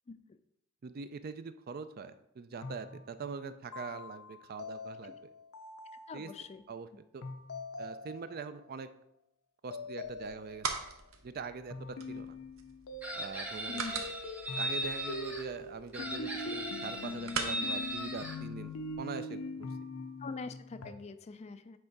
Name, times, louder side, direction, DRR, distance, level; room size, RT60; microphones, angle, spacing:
voice 1, 0.8-5.3 6.1-6.3 6.7-6.9 7.1-7.2 7.8-8.9 9.6-10.7 11.2-12.4 13.1-13.8 14.6-19.7, right 5 dB, 45° right, 12 dB, 0.4 m, -43 dB
sound 1, 2.6-6.5 7.2-8.7 9.7-10.9 11.7-13.6 13.9-20.9, left 2 dB, 85° left, 0.6 m, -43 dB
voice 2, 6.1-6.6 13.7-14.0 20.2-21.8, left 4 dB, 30° left, 11 dB, 0.3 m, -43 dB
sound 2, 10.0-18.9, right 5 dB, 70° right, 0.8 m, -43 dB
Chicken rooster, 13.0-15.4 15.9-18.4, right 1 dB, 5° right, 0.7 m, -38 dB
7.8 x 3.6 x 4.6 m, 0.79 s
head